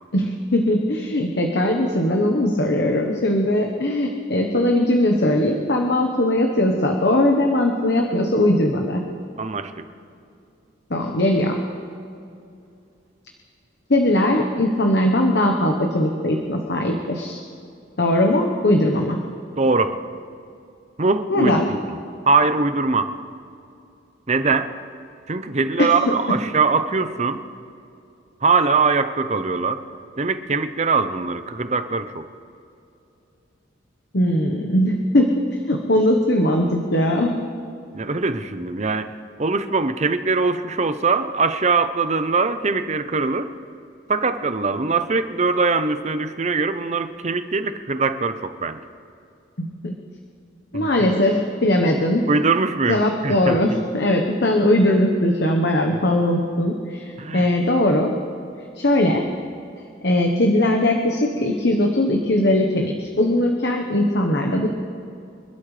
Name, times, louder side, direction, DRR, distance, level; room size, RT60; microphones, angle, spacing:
voice 1, 0.1-9.0 10.9-11.6 13.9-17.4 18.0-19.2 21.3-21.7 25.8-25.9 34.1-37.4 49.6-50.0 50.7-52.3 52.9-58.1 58.8-59.3 60.0-64.7, left 1 dB, 55° left, 2 dB, 1.1 m, -20 dB
voice 2, 9.4-9.9 19.6-20.0 21.0-22.0 22.3-23.2 24.3-24.8 25.3-27.4 28.4-29.8 30.2-32.3 37.9-43.5 44.1-48.8 50.7-51.1 52.3-53.8 55.9-56.0 57.2-57.5, right 4 dB, 35° right, 10 dB, 0.7 m, -22 dB
27.0 x 12.5 x 3.3 m, 2.6 s
head